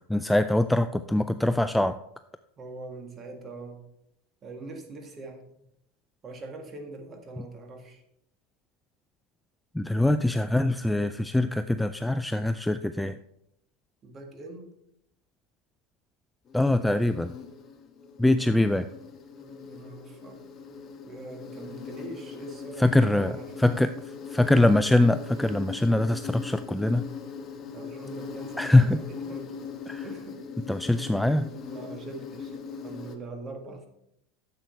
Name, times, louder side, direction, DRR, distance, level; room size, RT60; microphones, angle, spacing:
voice 1, 0.1-2.0 9.7-13.2 16.5-17.3 18.2-18.9 22.8-23.9 24.3-27.1 28.6-29.0 29.9-30.0 30.7-31.5, left 1 dB, 5° left, 10 dB, 0.3 m, -23 dB
voice 2, 2.6-3.8 4.4-5.6 6.2-8.0 14.0-14.8 18.4-18.6 19.4-20.4 21.0-23.9 27.7-29.5 30.0-30.4 31.7-33.9, right 2 dB, 25° right, 4 dB, 1.8 m, -43 dB
Insect, 16.5-33.2, left 5 dB, 30° left, 1.2 m, -40 dB
10.5 x 7.8 x 3.2 m, 0.78 s
supercardioid pair, 130°, 0 cm